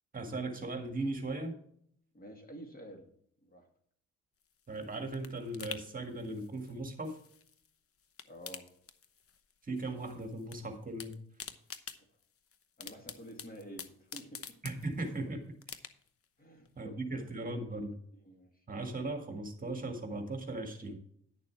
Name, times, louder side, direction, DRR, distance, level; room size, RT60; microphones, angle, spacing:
voice 1, 0.1-1.6 4.7-7.2 9.6-11.2 14.6-15.5 16.8-18.0 18.7-21.0, right 2 dB, 30° right, 4 dB, 1.8 m, -38 dB
voice 2, 2.1-3.1 3.4-3.7 8.2-8.7 12.0-12.1 12.8-14.4 14.8-14.9 16.4-17.7 18.3-18.6, right 1 dB, 30° left, 3 dB, 2.2 m, -50 dB
sound 1, 4.4-7.7 8.0-9.5 9.8-10.6 10.8-15.2 15.6-16.2 16.6-16.7, left 7 dB, 50° left, 0.9 m, -48 dB
10.5 x 6.8 x 4.5 m, 0.65 s
cardioid pair, 90°, 30 cm